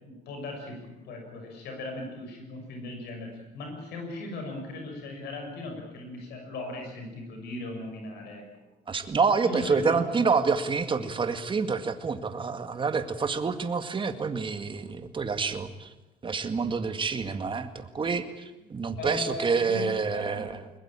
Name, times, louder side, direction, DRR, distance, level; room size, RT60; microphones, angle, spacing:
voice 1, 0.0-8.5 9.4-10.3 14.9-15.0 19.0-20.6, left 2 dB, 75° left, 3 dB, 6.6 m, -38 dB
voice 2, 8.9-15.9 16.2-18.3 18.7-20.5, right 5 dB, 30° right, 9 dB, 2.0 m, -27 dB
21.5 x 21.0 x 8.9 m, 1.1 s
cardioid pair, 110°, 17 cm